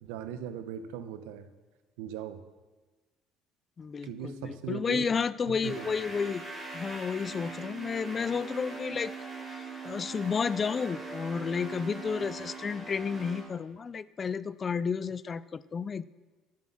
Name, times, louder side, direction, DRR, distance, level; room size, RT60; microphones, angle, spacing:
voice 1, 0.0-1.5 2.0-2.4 4.0-5.2 5.5-5.9, right 9 dB, 85° right, 11 dB, 0.8 m, -39 dB
voice 2, 3.8-6.4 6.7-9.1 9.8-16.1, left 6 dB, 30° left, 18 dB, 0.3 m, -31 dB
sound 1, 5.6-13.4, right 3 dB, 10° right, 3.8 m, -41 dB
11.0 x 7.3 x 6.1 m, 1.2 s
supercardioid pair, 95°, 0 cm